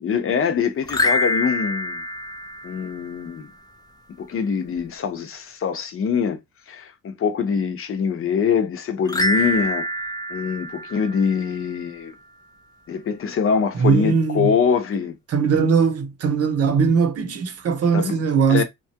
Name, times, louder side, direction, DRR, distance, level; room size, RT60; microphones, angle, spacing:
voice 1, 0.0-2.0 2.6-3.5 4.2-6.4 6.7-9.9 10.3-12.1 12.9-15.2 17.9-18.2 18.5-18.6, left 6 dB, 45° left, 0.8 m, -24 dB
sound 1, 0.8-3.3 9.1-11.7, left 1 dB, 15° left, 0.6 m, -26 dB
voice 2, 13.7-14.5 15.3-18.6, right 5 dB, 55° right, 0.8 m, -20 dB
2.9 x 2.3 x 2.8 m
cardioid pair, 90°, 30 cm